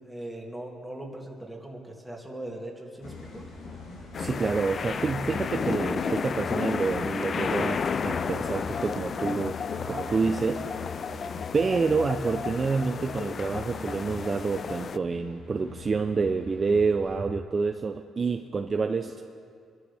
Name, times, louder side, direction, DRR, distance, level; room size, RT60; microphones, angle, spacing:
voice 1, 0.0-3.5 9.8-10.0, right 1 dB, 5° right, -1 dB, 2.4 m, -40 dB
sound 1, 3.0-17.1, left 3 dB, 90° left, 3.0 m, -42 dB
sound 2, 4.1-15.0, left 6 dB, 50° left, 0.4 m, -32 dB
voice 2, 4.2-9.6 9.9-10.6 11.5-19.2, right 4 dB, 35° right, 5 dB, 0.6 m, -28 dB
24.0 x 12.5 x 3.5 m, 2.2 s
cardioid pair, 90°, 0 cm